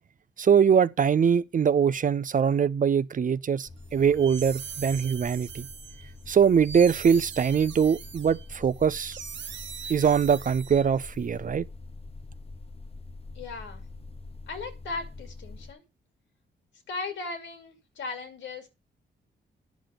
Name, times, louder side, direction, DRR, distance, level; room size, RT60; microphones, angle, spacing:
voice 1, 0.4-5.7 6.3-9.2 9.9-11.7, right 7 dB, 45° right, 0.6 m, -22 dB
sound 1, 3.7-15.7, left 3 dB, 30° left, 1.2 m, -45 dB
sound 2, 3.9-11.2, right 7 dB, 70° right, 1.0 m, -42 dB
voice 2, 13.3-13.8 14.5-15.8 16.9-18.7, left 3 dB, 80° left, 2.7 m, -37 dB
10.5 x 5.1 x 5.8 m
cardioid pair, 60°, 19 cm